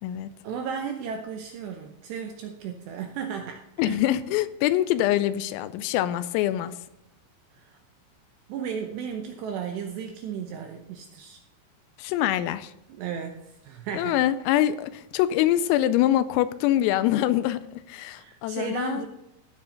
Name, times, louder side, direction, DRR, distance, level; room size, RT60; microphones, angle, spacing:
voice 1, 0.4-4.0 7.5-7.8 8.5-11.4 12.9-14.1 18.2-19.1, right 7 dB, 80° right, 4 dB, 2.5 m, -34 dB
voice 2, 3.8-6.8 12.0-12.7 13.9-19.0, left 13 dB, 85° left, 13 dB, 3.3 m, -24 dB
15.5 x 7.9 x 3.9 m, 0.84 s
omnidirectional pair, 6.0 m